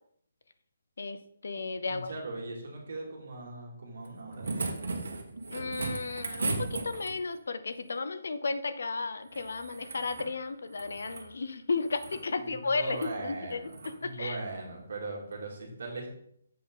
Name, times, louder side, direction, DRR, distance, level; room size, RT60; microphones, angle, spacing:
voice 1, 1.0-2.1 5.5-14.4, left 4 dB, 65° left, 11 dB, 0.6 m, -34 dB
voice 2, 1.9-4.5 12.4-13.7 14.0-16.1, right 2 dB, 55° right, -1 dB, 2.3 m, -39 dB
sound 1, 4.0-7.4 9.3-10.3 10.7-11.3 11.8-12.2 12.9-13.1 13.7-14.0 15.3-15.4, right 3 dB, 85° right, 1.4 m, -37 dB
7.5 x 5.5 x 3.8 m, 0.71 s
hypercardioid pair, 180°, 0 cm